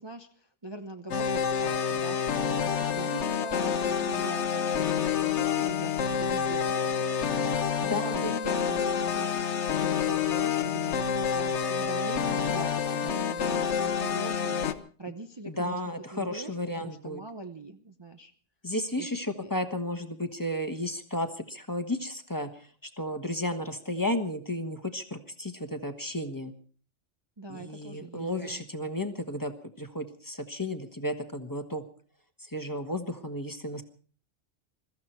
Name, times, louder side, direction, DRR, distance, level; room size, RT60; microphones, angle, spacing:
voice 1, 0.0-14.7 15.0-18.3 19.0-19.1 19.4-19.5 27.4-28.7, right 2 dB, 25° right, 5 dB, 0.8 m, -42 dB
sound 1, 1.1-14.7, left 7 dB, 70° left, 1.3 m, -28 dB
voice 2, 7.8-8.3 15.4-17.2 18.6-26.5 27.5-31.8 32.4-33.8, left 1 dB, 15° left, 7 dB, 1.3 m, -33 dB
22.0 x 14.0 x 4.5 m, 0.42 s
omnidirectional pair, 1.2 m